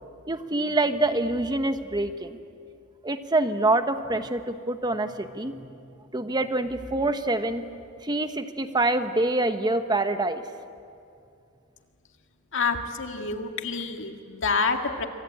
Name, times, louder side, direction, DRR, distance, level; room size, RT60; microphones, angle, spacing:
voice 1, 0.3-2.4 3.0-5.5 6.1-7.6 8.0-10.4, right 2 dB, 20° right, 8 dB, 1.2 m, -25 dB
voice 2, 12.5-15.1, left 4 dB, 65° left, 4 dB, 2.1 m, -27 dB
27.5 x 24.0 x 8.7 m, 2.4 s
head